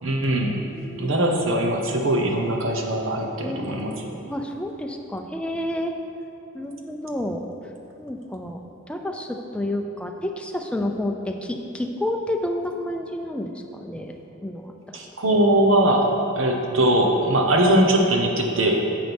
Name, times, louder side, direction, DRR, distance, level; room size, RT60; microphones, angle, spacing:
voice 1, 0.0-0.5 1.0-4.1 14.9-18.8, right 1 dB, 75° right, 2 dB, 1.1 m, -21 dB
voice 2, 0.6-1.2 3.4-5.9 6.5-7.5 8.0-8.6 8.9-14.1 14.4-15.0, left 1 dB, 5° left, 3 dB, 0.5 m, -30 dB
10.5 x 7.7 x 3.5 m, 2.7 s
head